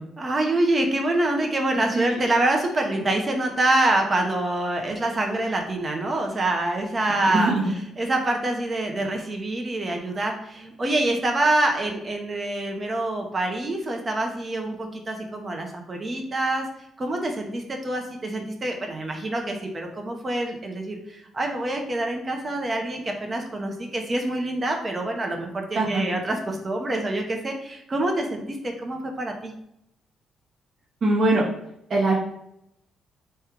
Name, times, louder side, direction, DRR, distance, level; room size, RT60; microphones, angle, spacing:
voice 1, 0.2-7.5 8.0-16.7 17.0-29.5, right 2 dB, 30° right, 2 dB, 0.8 m, -26 dB
voice 2, 7.3-7.6 25.7-26.0 31.0-31.4 31.9-32.1, right 2 dB, 50° right, -7 dB, 1.1 m, -21 dB
3.3 x 2.4 x 4.4 m, 0.78 s
cardioid pair, 90°, 0 cm